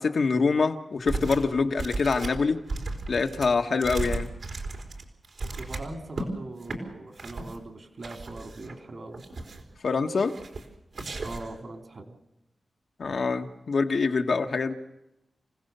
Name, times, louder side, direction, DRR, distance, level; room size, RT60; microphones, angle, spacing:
voice 1, 0.0-2.6 3.1-4.3 9.8-10.3 13.0-14.7, left 4 dB, 70° left, 5 dB, 1.4 m, -25 dB
sound 1, 1.1-1.5 1.8-6.3 6.6-6.8 7.2-7.6 8.0-8.8 9.1-9.7 10.3-10.7 10.9-11.6, right 3 dB, 75° right, 3.8 m, -35 dB
voice 2, 5.6-9.2 11.2-12.2, right 2 dB, 60° right, 5 dB, 3.0 m, -41 dB
28.0 x 16.5 x 6.8 m, 0.92 s
wide cardioid pair, 80°, 0 cm